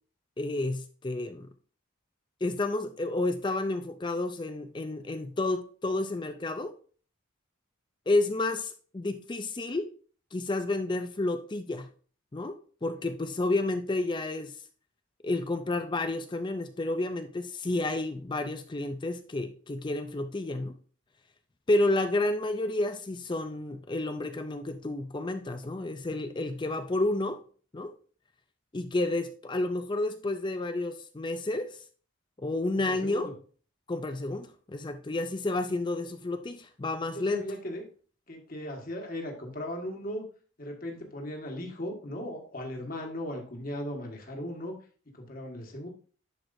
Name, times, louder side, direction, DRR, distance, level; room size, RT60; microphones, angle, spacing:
voice 1, 0.4-1.5 2.4-6.7 8.1-9.9 10.3-11.9 12.3-14.6 15.2-20.7 21.7-27.4 27.7-27.9 28.7-31.8 32.4-33.3 33.9-37.4, left 2 dB, 20° left, 8 dB, 0.4 m, -30 dB
voice 2, 32.7-33.3 37.1-37.8 38.3-40.2 40.6-44.7 45.1-45.9, equal, 40° left, 2 dB, 1.5 m, -37 dB
10.5 x 4.7 x 2.6 m, 0.40 s
head